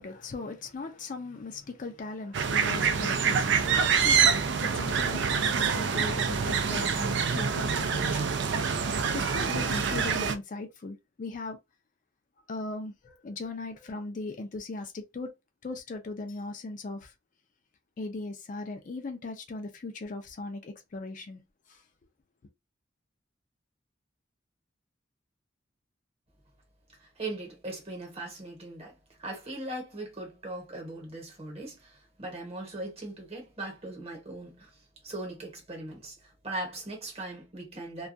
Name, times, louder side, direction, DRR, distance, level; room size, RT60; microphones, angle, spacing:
voice 1, 0.0-8.6 9.1-11.6 12.5-15.3 15.6-17.1 18.0-21.4 21.7-21.8, left 3 dB, 45° left, 0.4 m, -39 dB
sound 1, 2.3-10.3, right 6 dB, 65° right, 0.4 m, -26 dB
voice 2, 27.0-34.7 35.0-36.2 36.4-38.1, right 2 dB, 35° right, 1.0 m, -39 dB
2.3 x 2.3 x 2.6 m
head